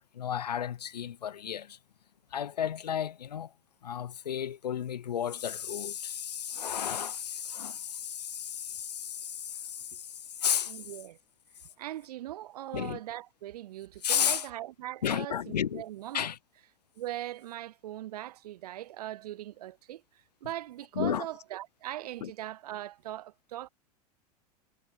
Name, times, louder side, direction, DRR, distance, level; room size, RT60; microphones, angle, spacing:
voice 1, 0.0-1.8 2.3-3.5 3.8-10.9 12.7-13.0 14.0-14.5 15.0-15.8 16.1-16.4 20.9-21.3 22.2-22.3, left 9 dB, 85° left, 0.8 m, -33 dB
voice 2, 10.6-11.2 11.8-16.3 17.0-20.0 20.4-23.7, right 14 dB, 70° right, 0.6 m, -40 dB
hypercardioid pair, 90°, 20 cm